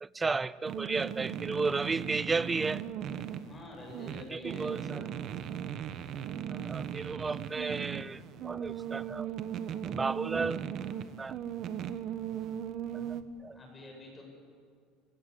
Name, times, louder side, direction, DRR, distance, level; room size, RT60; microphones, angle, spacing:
voice 1, 0.0-2.8 4.3-5.0 6.5-9.3 9.8-10.6 11.2-11.4 13.4-13.6, right 4 dB, 15° right, 19 dB, 0.5 m, -33 dB
sound 1, 0.7-13.2, right 9 dB, 45° right, 1.2 m, -38 dB
voice 2, 3.5-5.1 13.1-13.2 13.5-14.2, left 1 dB, 20° left, 0 dB, 7.5 m, -47 dB
30.0 x 17.0 x 8.4 m, 2.2 s
cardioid pair, 145°, 0 cm